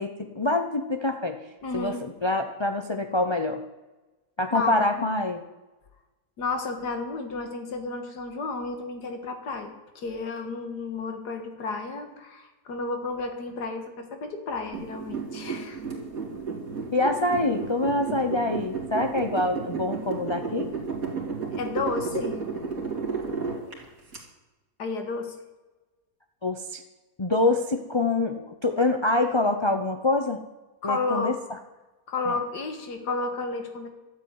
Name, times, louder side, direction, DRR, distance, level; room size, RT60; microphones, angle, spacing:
voice 1, 0.0-1.4 1.7-3.6 4.4-5.4 16.7-20.7 26.4-26.8 27.2-30.4 30.8-31.4 32.3-32.4, left 2 dB, 30° left, 5 dB, 0.5 m, -25 dB
voice 2, 1.6-2.0 4.5-5.1 6.4-15.8 21.5-22.3 23.8-23.9 24.8-25.4 30.8-31.3 32.1-33.9, left 3 dB, 90° left, 6 dB, 2.2 m, -32 dB
sound 1, 14.7-24.2, right 5 dB, 60° right, 2.9 m, -33 dB
12.5 x 7.9 x 9.6 m, 1.1 s
omnidirectional pair, 1.7 m